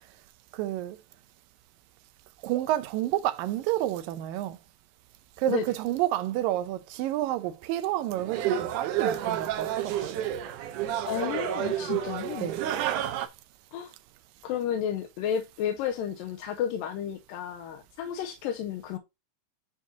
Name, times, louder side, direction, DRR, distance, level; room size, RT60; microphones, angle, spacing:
voice 1, 0.5-1.0 2.4-4.6 5.4-10.2 12.4-12.6, right 14 dB, 90° right, 2.4 m, -29 dB
sound 1, 8.2-13.3, right 10 dB, 75° right, 2.2 m, -30 dB
voice 2, 11.1-12.5 13.7-13.9 14.4-19.0, left 9 dB, 90° left, 2.5 m, -32 dB
9.4 x 4.7 x 2.8 m
omnidirectional pair, 3.9 m